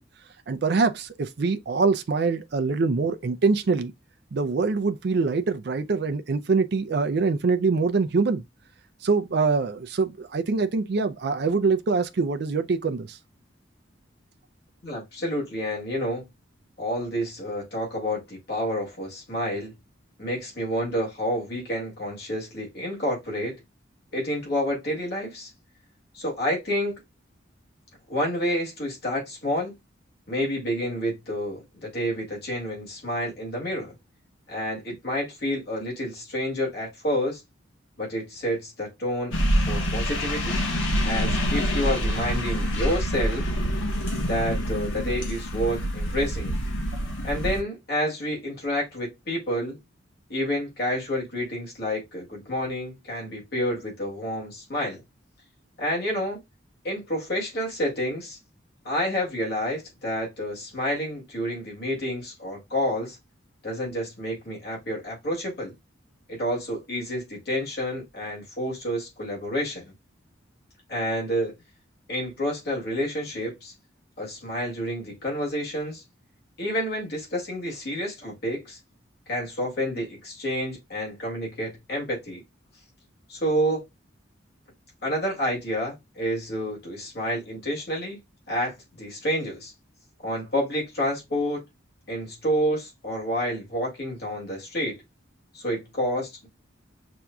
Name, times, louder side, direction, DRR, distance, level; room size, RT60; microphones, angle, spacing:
voice 1, 0.5-3.9 4.3-8.4 9.0-13.2, right 4 dB, 55° right, 0.4 m, -24 dB
voice 2, 14.8-16.3 16.8-19.7 20.2-23.6 24.1-25.5 26.1-27.0 28.1-29.7 30.3-33.9 34.5-37.4 38.0-39.3 39.7-40.6 41.0-43.5 44.2-46.5 47.2-49.8 50.3-55.0 55.8-56.4 56.8-58.4 58.8-63.2 63.6-65.7 66.3-69.9 70.9-71.5 72.1-73.7 74.2-76.0 76.6-78.8 79.3-82.4 83.3-83.8 85.0-88.2 88.5-89.7 90.2-91.6 92.1-95.0 95.5-96.5, equal, 55° left, 2.0 m, -29 dB
sound 1, 39.3-47.6, equal, 80° left, 1.2 m, -26 dB
5.8 x 2.6 x 2.2 m
head